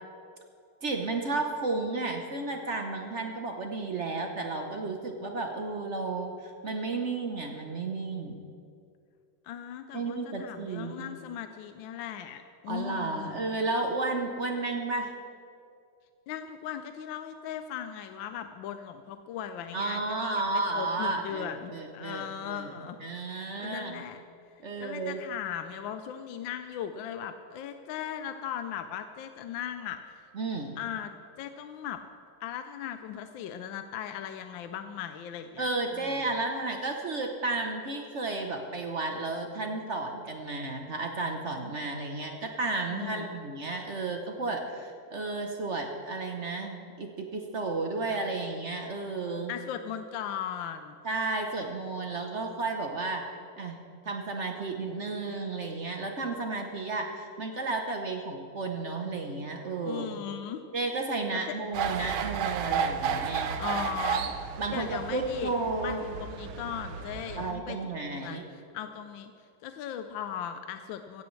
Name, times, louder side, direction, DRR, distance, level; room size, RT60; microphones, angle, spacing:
voice 1, 0.8-8.4 9.9-11.0 12.7-15.1 19.7-22.7 23.0-24.0 24.6-25.2 30.3-30.8 35.6-49.5 51.0-53.2 53.6-53.8 54.0-60.1 60.7-63.5 64.6-66.0 67.4-68.4, right 3 dB, 50° right, 3 dB, 0.9 m, -33 dB
voice 2, 9.4-13.4 16.3-24.2 24.8-30.2 30.8-32.0 32.4-36.2 42.9-43.4 49.5-51.0 59.8-60.6 61.3-61.6 63.6-64.3 64.7-65.5 65.8-71.2, left 9 dB, 75° left, 8 dB, 1.3 m, -38 dB
sound 1, 61.7-67.5, right 7 dB, 80° right, 1.5 m, -32 dB
16.0 x 15.5 x 3.2 m, 2.4 s
omnidirectional pair, 2.2 m